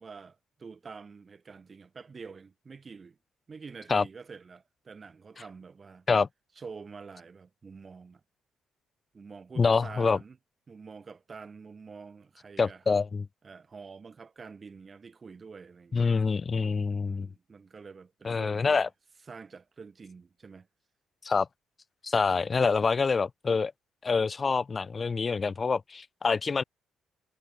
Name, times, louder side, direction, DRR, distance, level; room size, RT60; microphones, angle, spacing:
voice 1, 0.0-3.2 3.5-6.1 6.6-8.2 9.1-10.4 10.7-12.8 13.4-16.0 17.0-18.9 19.3-20.7, right 5 dB, 35° right, 3.8 m, -47 dB
voice 2, 9.6-10.2 12.6-13.3 15.9-17.3 18.2-18.9 21.2-21.5 22.0-23.7 24.0-26.6, left 4 dB, 35° left, 0.3 m, -26 dB
cardioid pair, 90°, 0 cm